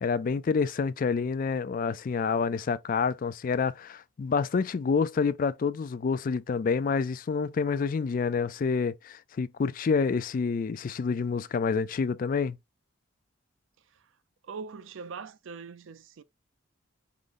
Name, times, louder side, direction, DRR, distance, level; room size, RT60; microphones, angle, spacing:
voice 1, 0.0-12.6, left 5 dB, 45° left, 0.3 m, -28 dB
voice 2, 14.4-16.2, right 5 dB, 85° right, 0.5 m, -41 dB
4.9 x 2.0 x 3.8 m
head